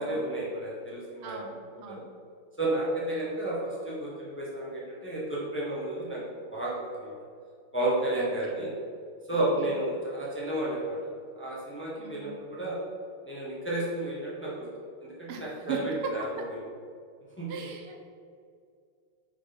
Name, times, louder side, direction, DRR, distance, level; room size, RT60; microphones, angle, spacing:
voice 1, 0.0-1.4 1.9-2.0 2.6-7.2 7.7-8.7 9.3-11.0 11.3-12.9 13.2-14.7 15.0-15.8 16.1-16.3 17.4-17.5, right 1 dB, 10° left, -6 dB, 0.5 m, -32 dB
voice 2, 1.2-2.1 8.2-8.6 9.3-9.7 12.0-12.4 15.3-15.8 17.5-18.0, right 6 dB, 80° right, 2 dB, 1.6 m, -40 dB
4.9 x 4.1 x 5.1 m, 2.3 s
omnidirectional pair, 2.4 m